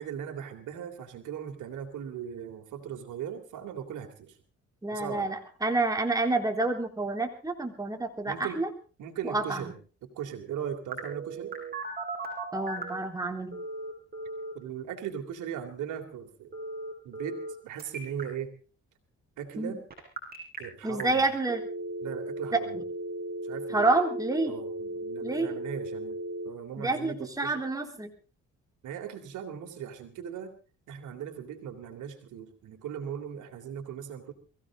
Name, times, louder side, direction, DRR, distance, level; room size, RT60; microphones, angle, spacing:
voice 1, 0.0-4.4 4.9-5.3 8.2-8.6 9.0-9.7 10.0-11.6 14.5-16.5 17.0-18.5 19.4-19.8 20.6-21.2 22.0-22.8 23.4-23.9 24.5-26.2 26.4-27.6 28.8-30.5 30.9-34.3, right 8 dB, 80° right, 6 dB, 3.1 m, -38 dB
voice 2, 4.8-8.7 9.2-9.6 12.5-13.5 19.6-19.8 20.8-21.6 22.7-22.8 23.7-24.5 25.2-25.5 26.8-28.1, right 2 dB, 10° right, 3 dB, 3.7 m, -28 dB
Telephone, 10.9-13.0 13.5-14.5 16.5-17.5 17.8-18.2 19.9-20.6 21.0-21.1 21.4-26.5, right 2 dB, 30° right, 6.7 m, -36 dB
23.0 x 16.0 x 3.7 m, 0.35 s
cardioid pair, 90°, 30 cm